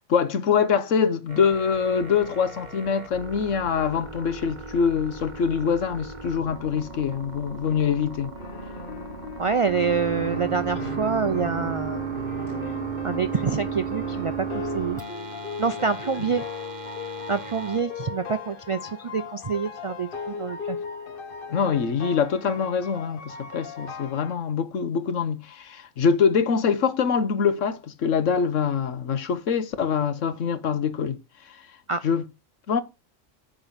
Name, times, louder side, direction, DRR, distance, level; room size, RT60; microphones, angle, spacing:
voice 1, 0.1-8.3 16.2-16.3 21.5-31.2 31.5-31.6 32.0-32.2 32.7-32.8, left 6 dB, 80° left, 1.3 m, -24 dB
sound 1, 1.3-17.8, right 6 dB, 40° right, 1.3 m, -35 dB
sound 2, 8.3-24.4, left 5 dB, 50° left, 1.1 m, -37 dB
voice 2, 9.4-12.0 13.0-15.0 15.6-16.4 17.3-20.8 31.9-32.0, right 5 dB, 60° right, 0.3 m, -26 dB
9.0 x 3.9 x 6.9 m
omnidirectional pair, 1.3 m